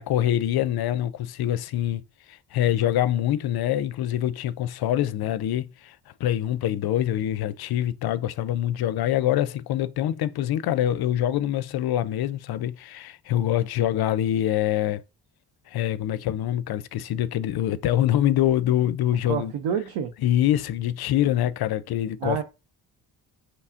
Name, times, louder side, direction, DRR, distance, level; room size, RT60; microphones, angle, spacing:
voice 1, 0.0-2.0 2.3-15.0 15.7-19.5 20.2-22.4, left 12 dB, 50° left, 0.5 m, -25 dB
voice 2, 19.2-20.1 22.2-22.4, right 8 dB, 65° right, 0.6 m, -28 dB
5.4 x 2.0 x 2.4 m
hypercardioid pair, 45°, 50 cm